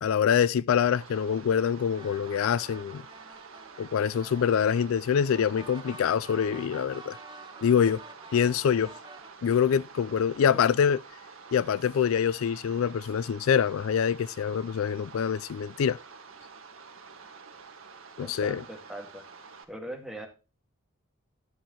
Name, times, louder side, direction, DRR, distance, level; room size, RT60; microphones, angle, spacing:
voice 1, 0.0-3.0 3.8-7.2 7.6-8.0 8.3-8.9 9.4-11.0 11.5-16.0 18.2-18.6, left 7 dB, 85° left, 0.4 m, -25 dB
sound 1, 0.8-19.6, right 5 dB, 80° right, 1.6 m, -49 dB
sound 2, 2.0-9.3, right 3 dB, 20° right, 1.0 m, -48 dB
voice 2, 18.2-19.2 19.7-20.3, right 1 dB, ahead, 1.8 m, -40 dB
11.5 x 7.4 x 2.9 m
head